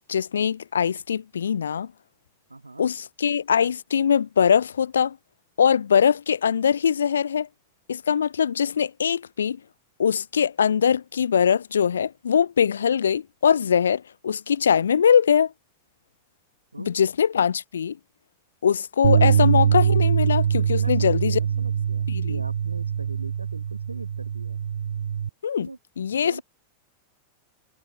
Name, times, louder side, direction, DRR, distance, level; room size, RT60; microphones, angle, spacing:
voice 1, 0.1-1.9 2.8-5.2 5.6-7.5 7.9-9.6 10.0-15.5 16.9-18.0 18.6-21.4 22.1-22.4 25.4-25.7 26.0-26.4, left 7 dB, 70° left, 0.9 m, -22 dB
voice 2, 2.5-2.8 16.7-16.9 20.8-24.7 25.6-25.8 26.2-26.4, right 2 dB, 80° right, 5.7 m, -41 dB
sound 1, 19.0-25.3, right 8 dB, 65° right, 0.5 m, -23 dB
figure-of-eight pair, 90°, 0 cm